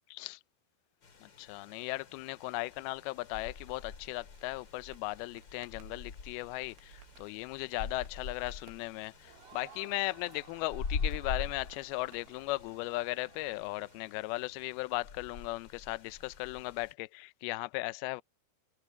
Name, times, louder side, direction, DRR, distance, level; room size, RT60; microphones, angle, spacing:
voice 1, 0.1-0.4 1.2-18.2, left 21 dB, 85° left, 2.2 m, -37 dB
sound 1, 1.0-16.9, left 5 dB, 40° left, 2.0 m, -44 dB
Crackle, 4.3-12.9, right 10 dB, 85° right, 3.9 m, -61 dB
Crowd, 9.2-14.5, right 7 dB, 55° right, 4.2 m, -58 dB
omnidirectional pair, 5.0 m